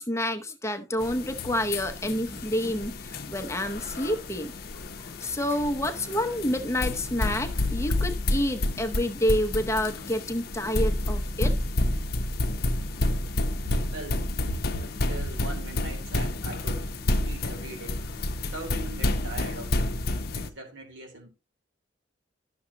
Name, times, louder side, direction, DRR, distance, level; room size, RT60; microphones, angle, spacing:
voice 1, 0.0-4.5 5.0-11.5, left 1 dB, 15° left, 0.8 m, -28 dB
sound 1, 1.0-20.5, left 1 dB, 55° left, 0.8 m, -30 dB
voice 2, 13.6-16.9 17.2-18.0 18.4-19.9 20.3-21.3, right 2 dB, 90° right, 3.3 m, -40 dB
12.0 x 6.9 x 2.9 m
head